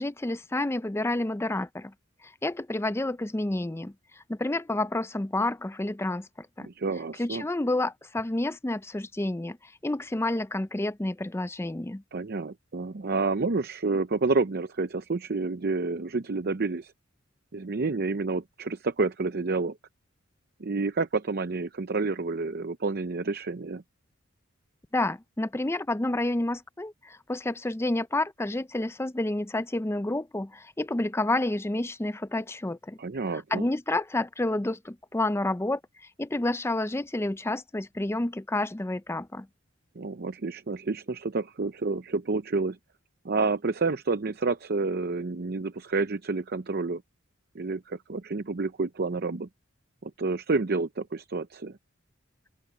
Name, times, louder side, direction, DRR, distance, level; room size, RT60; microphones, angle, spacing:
voice 1, 0.0-1.9 2.2-6.7 7.2-12.0 24.9-33.0 33.3-39.5, left 2 dB, 10° left, 0.5 m, -29 dB
voice 2, 6.6-7.4 12.1-16.9 17.5-19.8 20.6-23.8 33.0-33.7 40.0-42.8 43.2-47.0 47.5-49.5 50.0-51.8, right 3 dB, 50° right, 0.7 m, -29 dB
open air
head